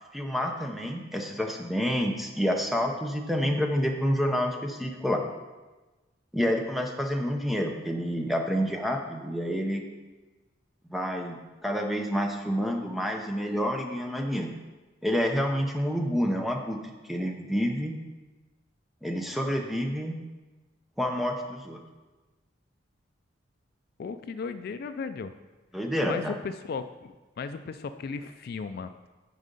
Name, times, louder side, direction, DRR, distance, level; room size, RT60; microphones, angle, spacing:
voice 1, 0.1-5.2 6.3-9.8 10.9-14.5 15.0-16.8 17.1-18.0 19.0-20.2 21.0-21.8 25.7-26.3, equal, ahead, 2 dB, 0.7 m, -28 dB
voice 2, 24.0-25.3 26.1-29.1, left 5 dB, 55° left, 10 dB, 0.3 m, -36 dB
10.0 x 4.2 x 5.3 m, 1.2 s
head